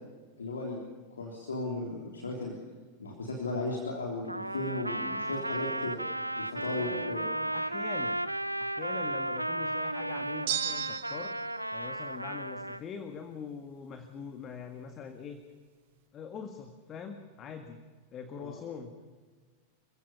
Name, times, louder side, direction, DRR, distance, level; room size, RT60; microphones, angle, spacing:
voice 1, 0.4-0.8 1.1-2.5 3.0-6.0 6.4-7.2 18.4-18.6, left 2 dB, 70° left, 0 dB, 3.5 m, -35 dB
Trumpet, 4.3-12.8, right 1 dB, 85° right, 0.6 m, -34 dB
voice 2, 6.8-8.3 8.6-11.4 11.7-15.4 16.1-17.8 18.1-19.1, left 6 dB, 30° left, 7 dB, 1.8 m, -43 dB
sound 1, 10.5-11.4, right 12 dB, 50° right, 1.3 m, -33 dB
27.0 x 16.0 x 7.3 m, 1.5 s
figure-of-eight pair, 90°, 0 cm